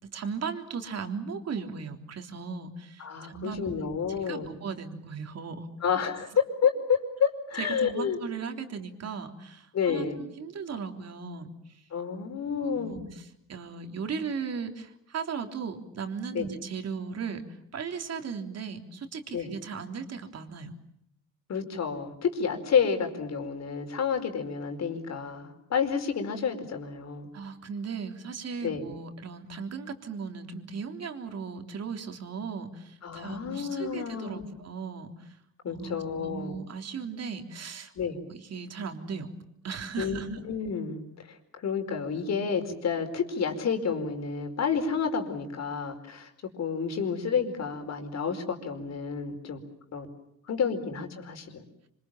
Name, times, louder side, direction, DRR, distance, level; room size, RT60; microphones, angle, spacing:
voice 1, 0.0-3.9 4.3-5.7 7.6-11.8 12.6-17.4 17.7-20.7 27.3-35.4 35.7-39.3 39.6-40.4, right 5 dB, 55° right, 5 dB, 3.5 m, -37 dB
voice 2, 3.0-4.5 5.8-8.2 9.7-10.2 11.9-13.1 16.3-16.5 19.3-19.5 21.5-27.3 28.6-28.9 33.0-34.5 35.6-36.6 37.9-38.2 40.0-41.4 41.6-46.3 46.6-49.6 49.9-50.1 50.5-51.6, left 6 dB, 60° left, 6 dB, 5.0 m, -30 dB
26.5 x 25.5 x 7.4 m, 0.77 s
cardioid pair, 90°, 30 cm